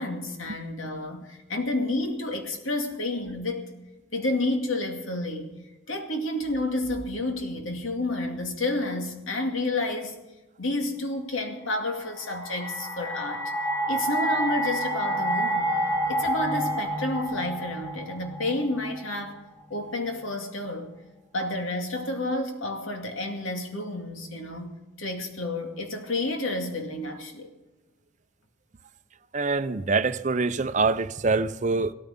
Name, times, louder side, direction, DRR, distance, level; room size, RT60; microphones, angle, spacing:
voice 1, 0.0-3.7 4.1-5.5 5.9-10.2 10.6-13.5 13.9-19.4 19.7-20.9 21.3-27.5, left 2 dB, 85° left, 2.3 m, -30 dB
sound 1, 12.0-19.1, right 1 dB, 25° left, 2.5 m, -29 dB
voice 2, 29.3-31.9, right 4 dB, 40° right, 0.6 m, -25 dB
17.0 x 14.0 x 5.3 m
head